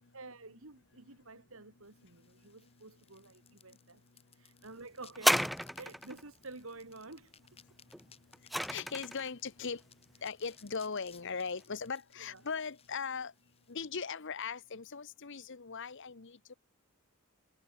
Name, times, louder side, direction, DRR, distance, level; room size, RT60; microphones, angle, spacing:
voice 1, 0.1-4.0 4.3-7.3 12.3-12.4, right 3 dB, 65° right, 2.5 m, -50 dB
sound 1, 1.8-13.7, left 8 dB, 25° left, 3.7 m, -63 dB
sound 2, 5.1-6.2 7.9-9.3 10.1-10.2, equal, ahead, 0.3 m, -31 dB
voice 2, 8.7-9.8 10.2-13.3 13.7-16.5, left 5 dB, 55° left, 0.9 m, -39 dB
head